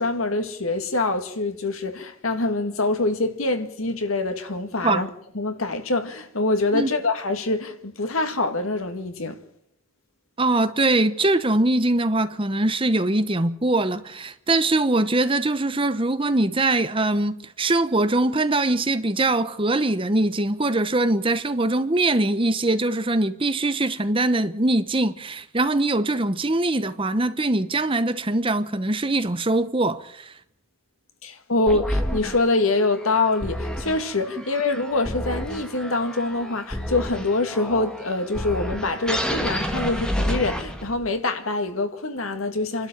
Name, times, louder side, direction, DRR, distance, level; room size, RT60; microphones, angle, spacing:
voice 1, 0.0-5.1 5.3-9.4 31.2-42.9, left 2 dB, 90° left, 2.1 m, -25 dB
voice 2, 10.4-30.3, right 2 dB, 25° right, 1.0 m, -22 dB
sound 1, 31.7-41.1, equal, 5° left, 1.7 m, -30 dB
28.5 x 12.0 x 7.5 m
head